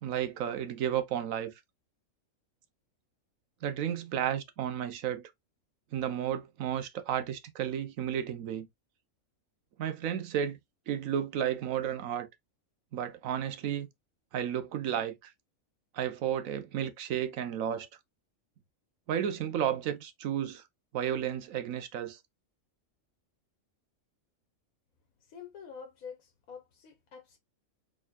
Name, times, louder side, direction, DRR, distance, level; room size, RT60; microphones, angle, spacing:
voice 1, 0.0-1.5 3.6-5.2 5.9-8.7 9.8-10.6 10.9-12.3 12.9-13.9 14.3-15.3 15.9-17.9 19.1-20.6 20.9-22.2, right 9 dB, 75° right, 1.1 m, -32 dB
voice 2, 25.3-27.4, left 6 dB, 85° left, 1.4 m, -47 dB
4.3 x 3.7 x 2.2 m
omnidirectional pair, 1.4 m